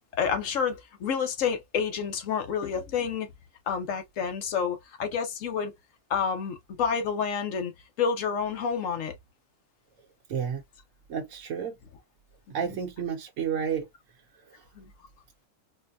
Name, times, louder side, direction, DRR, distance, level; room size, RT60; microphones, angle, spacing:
voice 1, 0.2-3.3 3.7-5.7 6.1-7.7 8.0-9.2 12.6-12.8 14.8-14.9, left 6 dB, 70° left, 1.2 m, -29 dB
voice 2, 10.3-10.6 11.1-11.8 12.5-13.9, right 7 dB, 70° right, 1.1 m, -31 dB
4.3 x 2.2 x 2.5 m
omnidirectional pair, 1.5 m